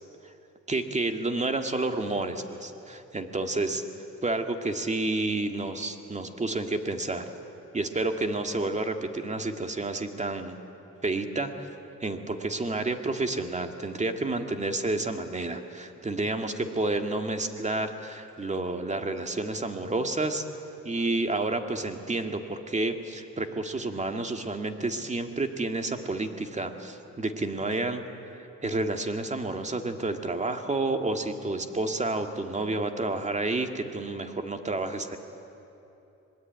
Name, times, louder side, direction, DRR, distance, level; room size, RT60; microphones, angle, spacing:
voice 1, 0.7-3.8 4.2-7.3 7.7-10.6 11.0-11.7 12.0-20.4 20.8-35.2, right 2 dB, 25° right, 6 dB, 2.1 m, -30 dB
26.0 x 20.5 x 9.4 m, 2.9 s
cardioid pair, 90°, 30 cm